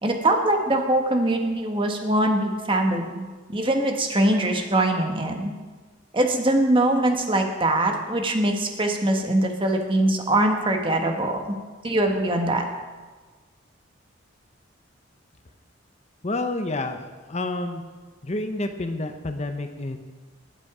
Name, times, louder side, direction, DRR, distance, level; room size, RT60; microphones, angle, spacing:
voice 1, 0.0-5.5 6.1-11.6 11.8-12.6, right 1 dB, 25° right, 3 dB, 1.4 m, -22 dB
voice 2, 16.2-17.0 17.3-17.8 18.2-20.0, left 2 dB, 35° left, 7 dB, 0.8 m, -29 dB
20.5 x 8.0 x 4.9 m, 1.3 s
head